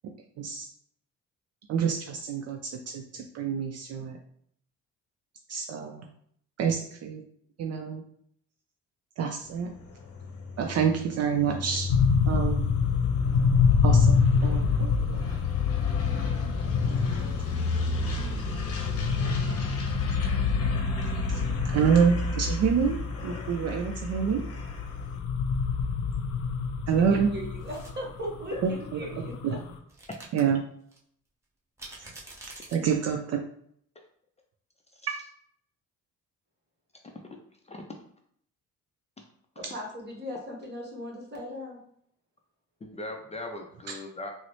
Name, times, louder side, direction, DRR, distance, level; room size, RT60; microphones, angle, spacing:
voice 1, 0.4-0.7 1.7-4.2 5.5-6.1 6.6-7.2 7.6-8.0 9.2-9.7 10.6-11.9 12.3-12.7 13.8-15.4 16.8-17.1 21.3-23.0 23.2-24.4 26.9-27.3 28.6-29.0 29.4-29.6 30.3-30.7 32.7-33.4 43.9-44.0, right 6 dB, 55° right, 3 dB, 0.4 m, -27 dB
sound 1, 9.5-25.2, left 4 dB, 50° left, 0.7 m, -32 dB
sound 2, 11.9-29.8, left 5 dB, 85° left, 0.5 m, -27 dB
voice 2, 26.9-29.6 39.6-41.8, equal, 35° right, 0 dB, 1.2 m, -38 dB
sound 3, 27.6-27.9 29.9-30.4 30.9-31.0 31.8-32.8, right 2 dB, 10° right, 0.9 m, -45 dB
voice 3, 37.0-37.4 37.6-38.0 42.8-44.3, left 2 dB, 20° left, 2 dB, 0.4 m, -39 dB
3.9 x 2.0 x 3.0 m, 0.65 s
cardioid pair, 90°, 30 cm